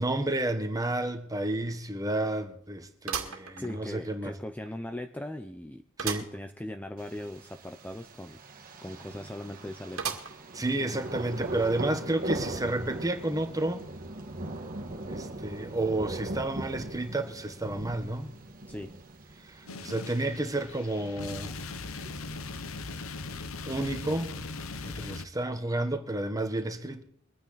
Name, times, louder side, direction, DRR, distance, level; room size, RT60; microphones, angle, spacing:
voice 1, 0.0-4.3 6.0-6.3 10.5-13.9 15.1-18.3 19.4-21.5 23.6-24.5 24.8-27.0, right 2 dB, 15° right, 1.5 m, -31 dB
sound 1, 0.8-0.9 1.4-1.5 3.1-4.2 4.7-4.8 6.0-6.4 6.8-6.9 7.1-7.2 10.0-10.6 11.2-11.3 12.3-12.4, right 7 dB, 80° right, 2.0 m, -36 dB
voice 2, 3.6-5.8 6.2-8.4 8.8-10.2 18.7-18.9, left 1 dB, 5° left, 0.6 m, -39 dB
Thunder, 7.0-25.0, right 2 dB, 45° right, 2.0 m, -41 dB
sound 2, 19.7-25.3, left 3 dB, 75° left, 0.9 m, -39 dB
23.5 x 9.4 x 4.1 m
head